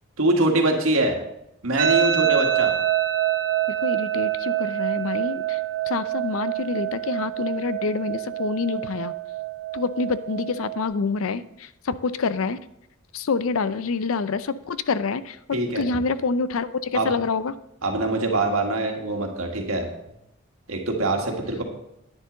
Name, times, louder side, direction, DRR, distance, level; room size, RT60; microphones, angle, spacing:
voice 1, 0.2-1.2 1.6-2.7 15.5-15.8 16.9-17.1 17.8-19.9 20.7-21.6, right 2 dB, 80° right, 2 dB, 1.8 m, -23 dB
sound 1, 1.8-10.8, right 12 dB, 40° right, 1.2 m, -26 dB
voice 2, 3.8-5.6 5.9-9.1 9.7-12.6 13.1-17.5, left 4 dB, 75° left, 14 dB, 0.5 m, -27 dB
10.0 x 9.9 x 3.9 m, 0.81 s
head